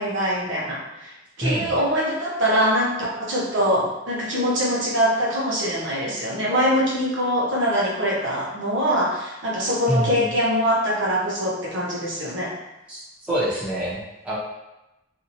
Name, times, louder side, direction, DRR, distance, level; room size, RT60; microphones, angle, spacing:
voice 1, 0.0-12.5, equal, 65° right, -5 dB, 0.9 m, -23 dB
voice 2, 1.4-1.8 9.9-10.3 12.9-14.4, right 1 dB, 5° right, -10 dB, 0.7 m, -26 dB
2.8 x 2.6 x 2.6 m, 0.94 s
head